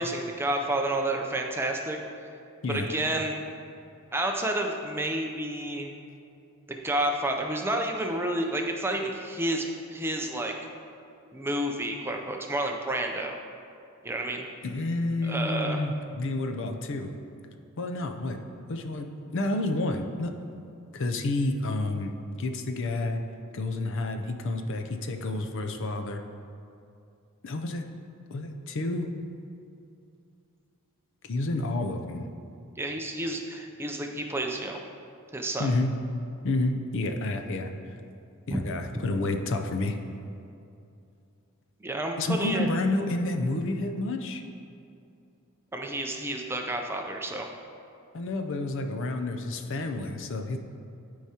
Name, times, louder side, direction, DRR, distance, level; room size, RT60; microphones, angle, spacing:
voice 1, 0.0-2.0 2.7-3.4 4.1-5.9 6.7-10.5 11.3-13.4 14.0-14.5 15.2-15.8 32.8-34.8 35.3-35.7 38.5-38.6 41.8-42.7 45.7-47.5, right 1 dB, 10° right, 2 dB, 0.4 m, -30 dB
voice 2, 14.6-17.1 17.8-18.4 18.7-20.3 20.9-22.1 22.4-23.2 23.5-26.2 27.4-27.9 28.3-29.1 31.3-32.3 35.6-35.9 36.4-38.0 38.5-40.0 42.2-44.4 48.1-50.6, left 2 dB, 60° left, 5 dB, 0.5 m, -29 dB
12.5 x 4.8 x 2.9 m, 2.6 s
head